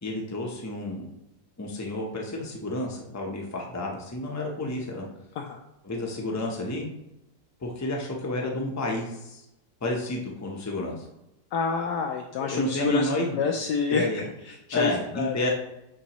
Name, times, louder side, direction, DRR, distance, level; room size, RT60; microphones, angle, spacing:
voice 1, 0.0-1.0 1.6-5.0 5.8-6.9 7.6-9.4 9.8-11.1 12.4-13.4 13.9-14.2 14.7-15.5, left 1 dB, 15° left, 0 dB, 0.5 m, -30 dB
voice 2, 11.5-15.4, left 5 dB, 75° left, 2 dB, 1.2 m, -28 dB
9.2 x 3.7 x 3.1 m, 0.88 s
omnidirectional pair, 1.9 m